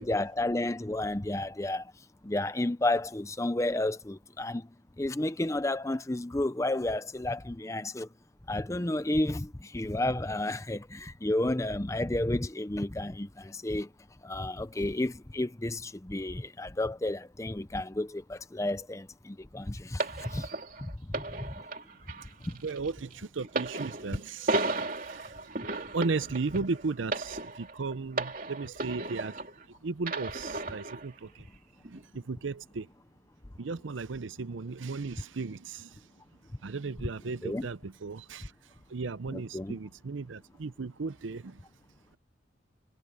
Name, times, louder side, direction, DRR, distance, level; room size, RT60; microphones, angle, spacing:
voice 1, 0.0-1.9 2.2-4.7 5.0-8.1 8.5-13.9 14.2-20.5 20.8-20.9 22.5-22.6 37.4-37.7 39.3-39.8, left 1 dB, 15° left, 0.6 m, -31 dB
sound 1, 20.0-29.6 30.0-31.1 31.8-32.0, right 2 dB, 45° right, 3.0 m, -35 dB
voice 2, 22.6-29.4 29.8-31.4 31.9-32.9 33.6-36.0 36.6-38.5 38.9-41.6, right 4 dB, 90° right, 0.6 m, -36 dB
head